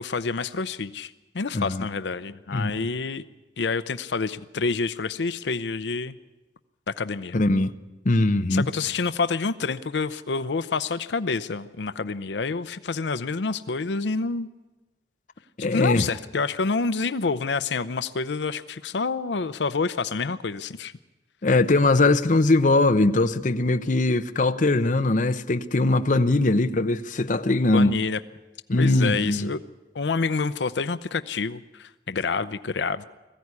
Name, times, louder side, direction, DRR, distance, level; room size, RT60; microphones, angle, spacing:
voice 1, 0.0-3.2 3.6-6.1 6.9-7.4 8.5-14.5 15.6-20.9 27.7-28.2 28.8-29.6 29.9-33.0, left 4 dB, 80° left, 0.6 m, -28 dB
voice 2, 1.5-1.9 2.5-2.7 7.3-7.7 8.0-8.7 15.6-16.0 21.4-27.9 28.7-29.5, left 2 dB, 45° left, 0.8 m, -21 dB
21.0 x 15.0 x 9.6 m
head